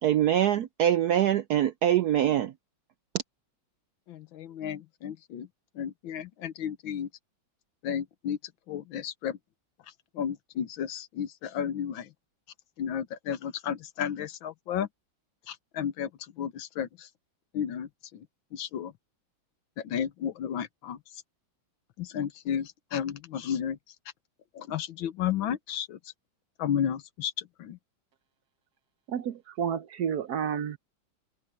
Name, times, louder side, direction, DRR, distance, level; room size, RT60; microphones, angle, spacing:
voice 1, 0.0-2.5, right 11 dB, 75° right, 0.9 m, -24 dB
voice 2, 4.1-5.5 5.8-7.1 7.8-8.4 8.7-9.4 10.1-12.1 12.8-14.9 15.5-16.1 16.4-17.1 17.5-18.2 18.5-18.9 19.8-21.0 22.0-23.8 24.5-26.0 26.6-27.8, left 9 dB, 75° left, 1.7 m, -33 dB
voice 3, 29.1-30.8, right 8 dB, 60° right, 1.1 m, -31 dB
omnidirectional pair, 2.2 m